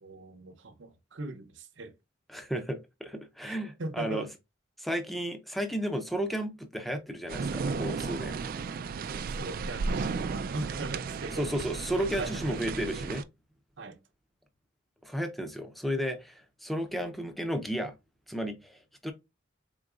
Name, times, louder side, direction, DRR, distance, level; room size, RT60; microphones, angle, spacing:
voice 1, 0.0-2.0 3.4-4.3 9.3-11.5 12.0-12.6 13.8-14.0, right 2 dB, 65° right, 0.7 m, -40 dB
voice 2, 2.3-4.3 4.8-8.4 11.3-13.3 15.0-17.9 18.3-19.1, equal, ahead, 0.6 m, -33 dB
sound 1, 7.3-13.2, right 4 dB, 45° right, 0.3 m, -34 dB
3.9 x 3.8 x 2.4 m
head